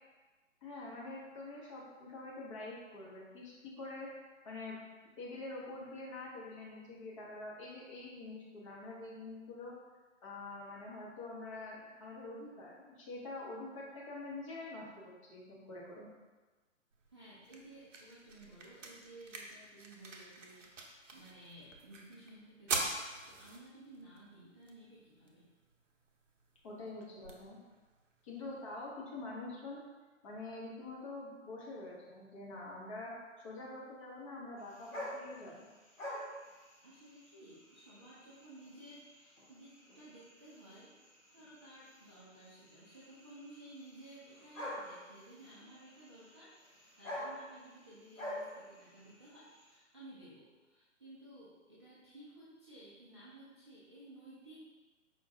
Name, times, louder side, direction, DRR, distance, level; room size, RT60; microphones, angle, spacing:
voice 1, 0.6-4.8 5.2-9.8 10.2-16.1 26.6-27.6 28.2-29.8 30.2-35.7, left 2 dB, 25° left, -5 dB, 0.6 m, -46 dB
sound 1, 16.9-28.9, right 3 dB, 70° right, 0.6 m, -45 dB
voice 2, 17.1-25.5 36.8-40.9 41.3-54.7, right 1 dB, 25° right, -10 dB, 0.4 m, -55 dB
sound 2, 34.6-49.8, left 1 dB, 80° left, 1.4 m, -49 dB
5.0 x 2.2 x 2.6 m, 1.3 s
figure-of-eight pair, 130°, 39 cm